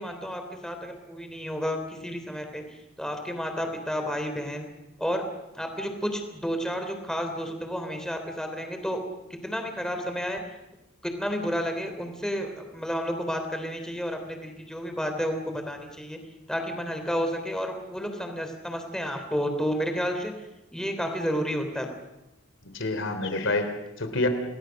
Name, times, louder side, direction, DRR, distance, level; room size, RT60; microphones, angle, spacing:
voice 1, 0.0-2.6 3.0-4.7 5.0-5.2 5.6-9.0 9.3-10.4 11.0-16.2 16.5-20.3 20.7-21.9, equal, 5° left, 5 dB, 3.4 m, -31 dB
voice 2, 22.6-24.3, left 2 dB, 70° left, 8 dB, 3.3 m, -28 dB
28.5 x 19.5 x 6.5 m, 0.94 s
head